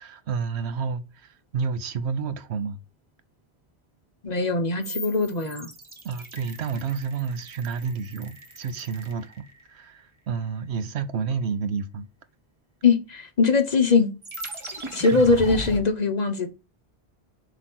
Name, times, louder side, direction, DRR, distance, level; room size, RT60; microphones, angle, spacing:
voice 1, 0.0-2.8 6.0-12.1, right 5 dB, 75° right, 1.0 m, -30 dB
voice 2, 4.2-5.7 12.8-14.1 14.9-16.5, left 4 dB, 45° left, 0.8 m, -21 dB
sound 1, 4.8-9.8 14.2-15.8, right 2 dB, 30° right, 1.0 m, -38 dB
7.8 x 3.0 x 6.0 m
omnidirectional pair, 1.1 m